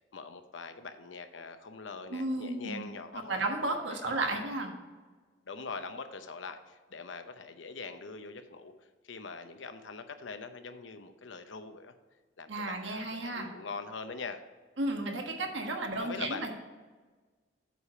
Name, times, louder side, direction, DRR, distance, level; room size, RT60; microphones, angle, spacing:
voice 1, 0.1-3.4 3.9-4.6 5.4-8.7 9.0-11.9 12.4-14.4 16.0-16.5, left 4 dB, 90° left, 8 dB, 0.8 m, -43 dB
voice 2, 2.1-2.8 3.3-4.7 12.5-13.5 14.8-16.5, right 2 dB, 85° right, 3 dB, 1.4 m, -33 dB
8.1 x 5.0 x 5.6 m, 1.4 s
head